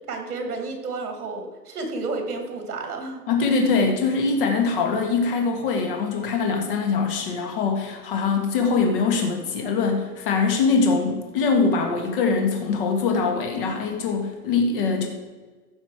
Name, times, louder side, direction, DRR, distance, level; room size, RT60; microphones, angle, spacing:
voice 1, 0.1-3.2, right 3 dB, 65° right, 4 dB, 2.7 m, -31 dB
voice 2, 3.3-15.1, left 4 dB, 35° left, 3 dB, 1.9 m, -23 dB
15.0 x 5.7 x 4.9 m, 1.4 s
hypercardioid pair, 170°, 46 cm